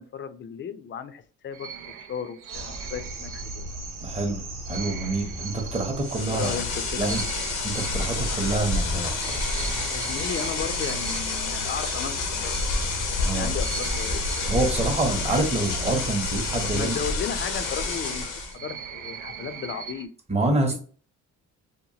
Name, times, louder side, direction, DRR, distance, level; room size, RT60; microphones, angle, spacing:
voice 1, 0.0-1.7 2.0-3.6 6.3-7.2 9.9-12.8 13.2-14.4 16.6-20.1 20.6-20.8, left 7 dB, 40° left, 10 dB, 0.4 m, -35 dB
sound 1, 1.5-4.0 4.6-13.2 13.5-20.1, right 7 dB, 85° right, 0.5 m, -41 dB
sound 2, 2.5-16.9, right 1 dB, 60° right, 0.8 m, -36 dB
voice 2, 4.0-4.4 4.7-6.6 7.0-7.2 7.6-9.4 13.2-13.5 14.5-17.0 20.3-20.8, right 2 dB, 20° right, 2 dB, 0.8 m, -26 dB
sound 3, 6.0-18.6, left 4 dB, 90° left, 0.7 m, -29 dB
2.8 x 2.2 x 2.7 m, 0.42 s
cardioid pair, 90°, 30 cm